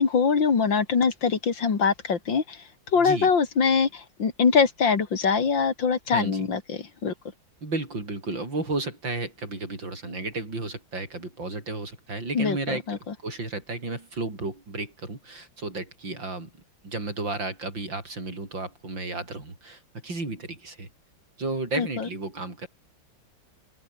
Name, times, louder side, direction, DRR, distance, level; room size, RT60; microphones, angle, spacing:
voice 1, 0.0-2.6 2.9-7.1 12.3-13.0 21.8-22.1, left 5 dB, 80° left, 3.3 m, -23 dB
voice 2, 3.0-3.3 6.1-6.5 7.6-16.5 16.8-20.9 21.4-22.7, right 2 dB, 80° right, 7.0 m, -33 dB
open air
omnidirectional pair, 2.0 m